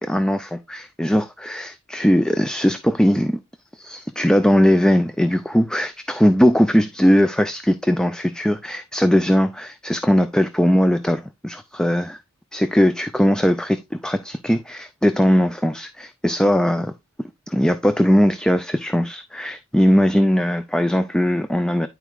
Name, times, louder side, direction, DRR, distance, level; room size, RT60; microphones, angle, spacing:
voice 1, 0.0-3.4 3.7-12.2 12.5-16.9 17.5-21.9, equal, 5° left, 0.4 m, -19 dB
11.0 x 4.6 x 2.3 m
head